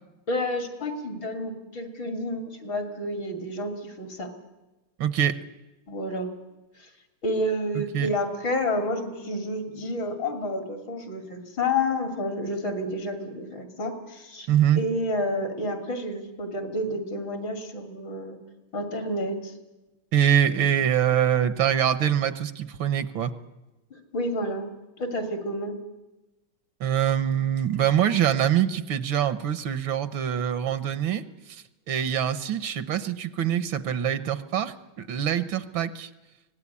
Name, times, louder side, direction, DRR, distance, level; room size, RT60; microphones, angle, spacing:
voice 1, 0.3-4.3 5.9-6.3 7.2-14.5 14.8-18.4 18.7-19.5 20.5-20.8 23.9-24.7 25.0-25.8, left 1 dB, 65° left, 6 dB, 3.5 m, -30 dB
voice 2, 5.0-5.4 7.8-8.1 14.5-14.8 20.1-23.3 26.8-31.2 31.5-36.1, right 10 dB, 75° right, 14 dB, 1.7 m, -24 dB
24.5 x 18.0 x 9.8 m, 1.1 s
omnidirectional pair, 2.2 m